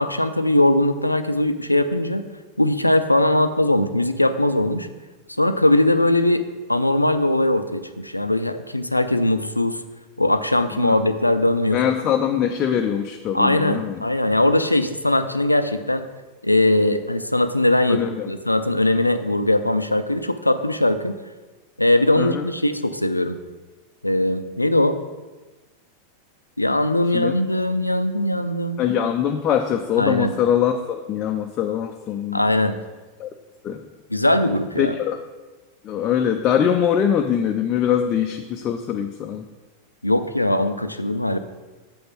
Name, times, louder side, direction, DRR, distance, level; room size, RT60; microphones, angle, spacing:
voice 1, 0.0-2.2 2.6-4.9 5.4-6.4 6.7-9.8 10.2-11.8 13.3-16.0 16.4-18.0 18.3-21.2 21.8-23.4 24.0-25.0 26.6-28.8 30.0-30.4 32.3-32.8 34.1-34.9 40.0-41.4, left 1 dB, 85° left, 11 dB, 0.4 m, -20 dB
voice 2, 11.7-14.0 17.9-18.3 22.2-22.5 27.1-27.3 28.8-32.4 33.2-33.3 33.6-33.8 34.8-35.2 35.8-39.4, left 9 dB, 30° left, 5 dB, 0.5 m, -22 dB
7.8 x 5.2 x 6.0 m, 1.2 s
figure-of-eight pair, 90°, 0 cm